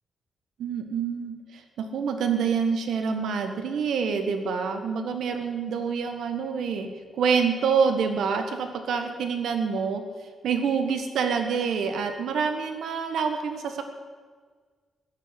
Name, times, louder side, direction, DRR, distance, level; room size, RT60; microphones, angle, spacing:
voice 1, 0.6-10.0 10.4-13.8, right 6 dB, 75° right, 6 dB, 1.7 m, -27 dB
15.0 x 6.9 x 10.0 m, 1.5 s
wide cardioid pair, 175°, 0 cm